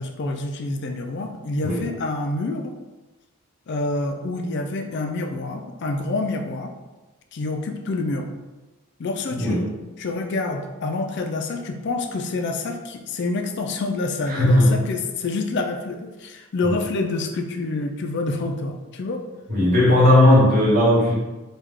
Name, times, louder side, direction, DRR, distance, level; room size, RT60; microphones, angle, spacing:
voice 1, 0.0-2.7 3.7-6.7 7.3-8.3 9.0-9.7 10.0-19.3, left 2 dB, 50° left, 5 dB, 0.4 m, -27 dB
voice 2, 9.3-9.7 14.3-14.7 19.5-21.1, left 1 dB, 40° right, -7 dB, 1.3 m, -16 dB
3.3 x 2.3 x 3.5 m, 1.2 s
head